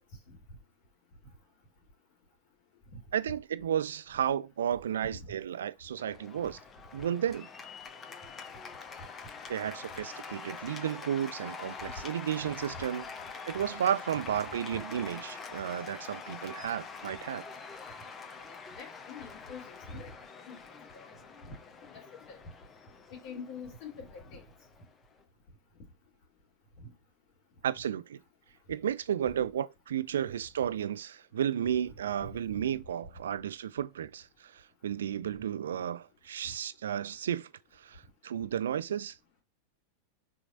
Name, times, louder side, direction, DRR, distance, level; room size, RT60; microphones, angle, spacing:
voice 1, 3.1-6.6 6.9-7.5 9.5-13.0 13.5-17.4 27.6-28.2 28.7-39.2, right 9 dB, 65° right, 0.3 m, -33 dB
Cheering / Applause, 6.0-25.2, left 5 dB, 20° left, 0.7 m, -45 dB
voice 2, 18.8-20.1 20.5-20.6 20.9-21.1 21.5-21.6 21.9-22.4 23.2-24.4 26.8-26.9 32.2-32.3 32.5-32.6, left 4 dB, 45° left, 2.6 m, -45 dB
6.1 x 3.2 x 2.5 m
figure-of-eight pair, 90°, 0 cm